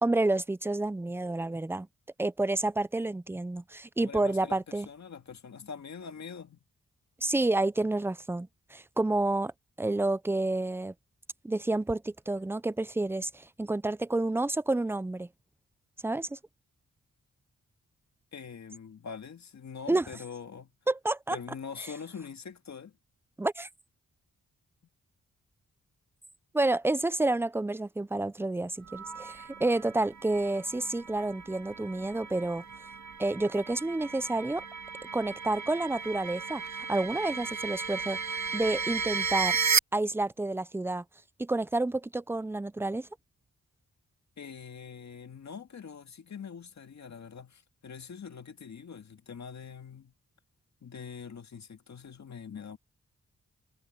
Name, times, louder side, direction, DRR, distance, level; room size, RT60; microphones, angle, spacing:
voice 1, 0.0-1.9 2.2-4.9 7.2-9.5 9.8-10.9 11.4-15.3 16.0-16.4 19.9-20.1 20.9-21.4 23.4-23.7 26.5-32.6 33.2-34.6 35.1-36.6 36.9-38.2 38.5-39.6 39.9-41.0 41.4-43.1, right 2 dB, 10° right, 0.4 m, -29 dB
voice 2, 4.0-6.6 18.3-20.7 21.3-23.0 44.4-50.1 50.8-52.8, left 6 dB, 65° left, 2.1 m, -44 dB
sound 1, 28.9-39.8, right 5 dB, 65° right, 2.0 m, -34 dB
wide cardioid pair, 110°, 30 cm